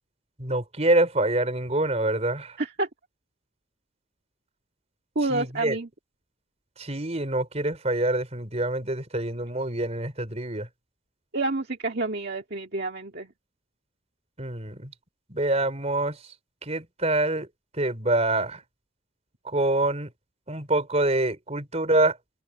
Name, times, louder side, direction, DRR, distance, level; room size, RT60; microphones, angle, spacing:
voice 1, 0.4-2.6 5.3-5.8 6.8-10.7 14.4-14.9 15.3-16.3 16.6-17.5 17.7-18.6 19.4-20.1 20.5-22.2, right 2 dB, 35° right, 4.5 m, -26 dB
voice 2, 2.6-2.9 5.2-5.9 11.3-13.3, right 2 dB, 55° right, 2.0 m, -28 dB
open air
head